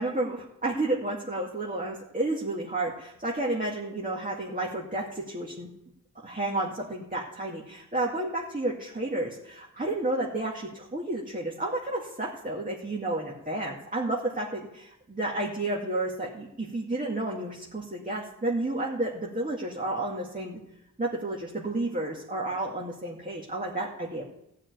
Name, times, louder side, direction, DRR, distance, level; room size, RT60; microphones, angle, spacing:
voice 1, 0.0-5.7 6.2-20.6 21.0-24.2, right 2 dB, 25° right, -3 dB, 2.2 m, -31 dB
15.0 x 5.1 x 9.5 m, 0.83 s
wide cardioid pair, 65°, 31 cm